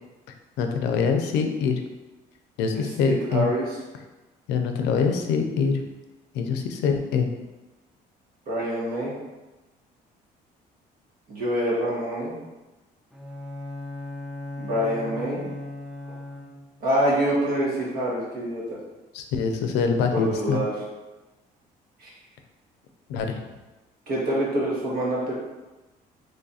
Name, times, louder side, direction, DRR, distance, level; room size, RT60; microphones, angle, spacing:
voice 1, 0.6-1.8 2.6-3.5 4.5-5.8 6.3-7.3 19.1-20.6 23.1-23.4, left 5 dB, 90° left, 5 dB, 0.5 m, -24 dB
voice 2, 2.7-3.8 8.5-9.1 11.3-12.4 14.6-15.5 16.8-18.8 20.1-20.7 22.0-22.1 24.1-25.3, right 1 dB, 60° right, -5 dB, 1.4 m, -26 dB
Bowed string instrument, 13.1-16.9, left 2 dB, 5° right, 0.5 m, -37 dB
3.1 x 2.4 x 4.0 m, 1.1 s
cardioid pair, 110°, 17 cm